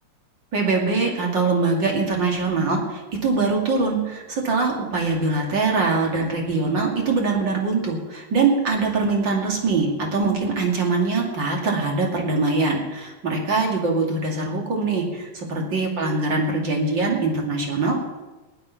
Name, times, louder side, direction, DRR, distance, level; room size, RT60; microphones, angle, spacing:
voice 1, 0.5-18.0, right 3 dB, 35° right, 0 dB, 2.8 m, -23 dB
19.0 x 11.5 x 5.8 m, 1.2 s
omnidirectional pair, 4.0 m